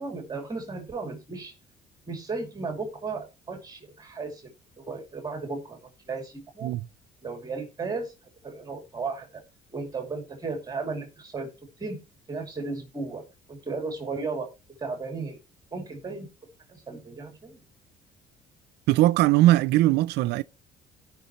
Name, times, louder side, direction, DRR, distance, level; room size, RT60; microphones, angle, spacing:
voice 1, 0.0-1.5 2.1-4.5 4.8-5.8 6.1-6.7 7.2-8.1 8.4-9.4 9.7-11.5 11.8-12.0 12.3-13.2 13.5-14.5 14.8-15.4 15.7-16.3 16.7-17.6, right 4 dB, 20° right, 2.5 m, -35 dB
voice 2, 18.9-20.4, right 16 dB, 80° right, 0.4 m, -20 dB
17.0 x 5.8 x 3.0 m
cardioid pair, 110°, 17 cm